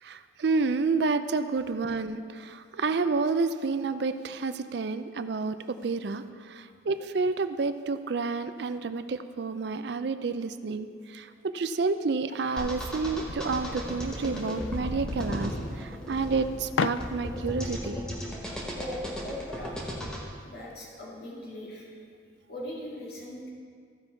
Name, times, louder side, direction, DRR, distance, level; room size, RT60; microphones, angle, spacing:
voice 1, 0.0-18.0, right 4 dB, 60° right, 11 dB, 0.4 m, -30 dB
sound 1, 12.3-17.6, left 7 dB, 90° left, 0.3 m, -38 dB
sound 2, 12.6-20.2, equal, 5° left, 1.0 m, -35 dB
voice 2, 18.8-19.8 20.4-22.0 22.5-23.5, left 1 dB, 55° left, -5 dB, 2.0 m, -39 dB
14.5 x 5.3 x 4.5 m, 2.1 s
head